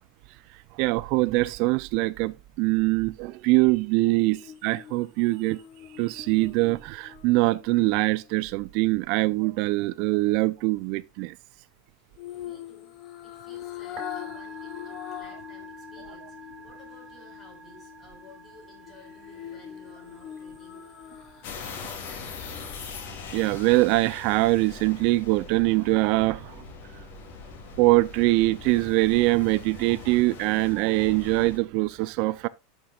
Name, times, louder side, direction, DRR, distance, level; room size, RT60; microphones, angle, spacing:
voice 1, 0.7-5.6 5.9-11.3 23.3-26.6 27.8-32.5, right 21 dB, 55° right, 0.3 m, -23 dB
sound 1, 4.4-8.6 12.2-15.5 15.9-16.0 18.8-21.7 22.1-22.2, left 11 dB, 45° left, 0.8 m, -42 dB
voice 2, 12.4-12.9 13.2-20.9 21.5-22.4, left 3 dB, 25° left, 4.3 m, -54 dB
Musical instrument, 13.9-28.5, left 2 dB, 25° right, 4.7 m, -47 dB
sound 2, 21.4-31.6, left 5 dB, 65° left, 2.5 m, -41 dB
11.5 x 5.9 x 2.3 m
supercardioid pair, 125°, 0 cm